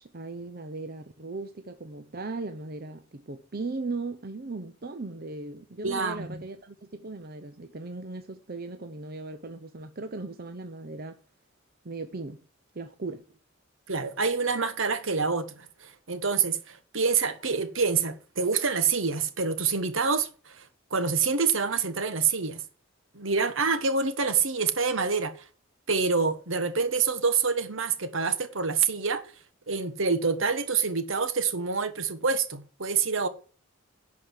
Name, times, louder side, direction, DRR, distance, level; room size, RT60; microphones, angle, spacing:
voice 1, 0.0-11.2 11.8-12.4 12.7-13.2, right 3 dB, 45° right, 0.7 m, -38 dB
voice 2, 5.8-6.4 13.9-20.6 20.9-22.6 23.1-25.3 25.9-29.2 29.7-33.3, right 5 dB, 65° right, 1.3 m, -27 dB
11.0 x 5.2 x 7.5 m
head